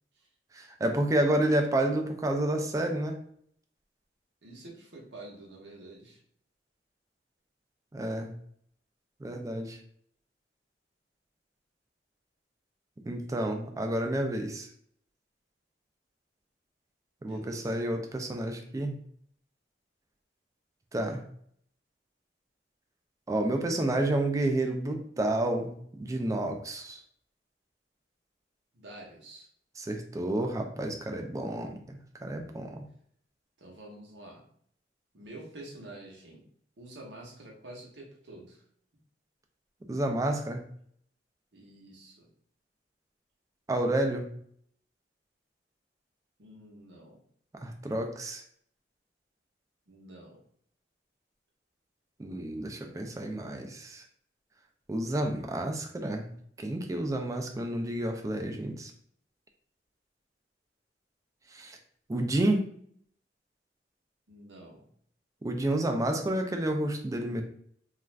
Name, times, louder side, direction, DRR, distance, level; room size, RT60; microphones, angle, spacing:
voice 1, 0.5-3.2 7.9-8.3 9.2-9.8 13.1-14.7 17.2-19.0 20.9-21.2 23.3-27.0 29.8-32.8 39.9-40.6 43.7-44.3 47.6-48.4 52.2-54.0 54.9-56.3 56.6-58.9 61.5-61.8 62.1-62.7 65.4-67.4, right 1 dB, 20° right, 4 dB, 0.3 m, -30 dB
voice 2, 4.4-6.2 17.2-17.8 28.7-29.5 33.6-34.5 35.1-36.4 36.8-38.6 41.5-42.3 46.4-47.2 49.9-50.4 64.3-64.8, right 1 dB, 90° right, -1 dB, 0.9 m, -48 dB
2.4 x 2.3 x 3.2 m, 0.64 s
head